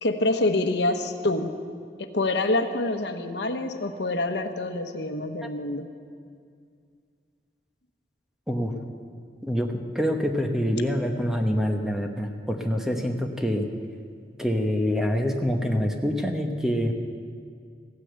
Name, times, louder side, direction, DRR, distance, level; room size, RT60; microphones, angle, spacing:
voice 1, 0.0-1.5 2.0-5.9, left 2 dB, 80° left, 7 dB, 1.0 m, -26 dB
voice 2, 9.4-13.7 14.4-16.9, equal, 5° right, 3 dB, 1.0 m, -26 dB
15.5 x 9.8 x 8.0 m, 2.2 s
head